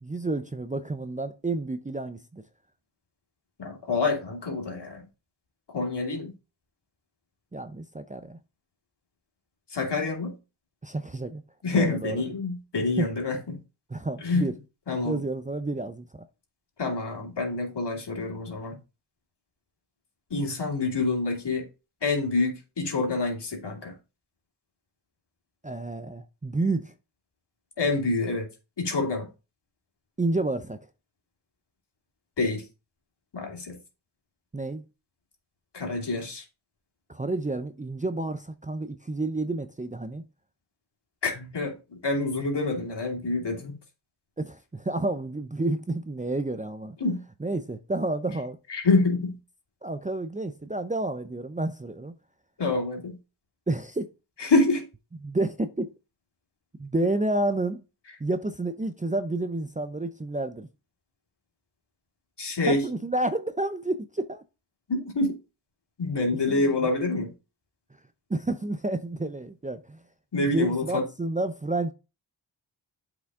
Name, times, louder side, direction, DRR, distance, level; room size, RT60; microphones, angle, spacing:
voice 1, 0.0-2.4 7.5-8.4 10.8-11.4 11.8-12.2 13.0-13.1 13.9-14.5 15.0-16.2 25.6-26.9 30.2-30.8 34.5-34.8 37.1-40.2 44.4-47.0 47.4-48.6 49.8-52.1 53.7-54.1 55.2-55.9 56.8-57.8 58.2-60.7 62.7-64.4 66.5-66.7 68.3-70.0 70.4-71.9, right 2 dB, 15° right, 0.6 m, -30 dB
voice 2, 3.6-5.0 5.7-6.3 9.7-10.3 11.6-13.6 14.2-14.5 14.9-15.2 16.8-18.8 20.3-21.7 22.0-24.0 27.8-28.5 28.8-29.3 32.4-32.7 33.3-33.8 35.7-36.4 41.2-43.8 47.0-47.2 48.7-49.4 52.6-53.2 54.4-54.8 62.4-62.8 64.9-65.4 66.0-67.3 70.3-71.1, left 3 dB, 60° left, 2.7 m, -27 dB
8.1 x 5.1 x 3.7 m
cardioid pair, 50°, 47 cm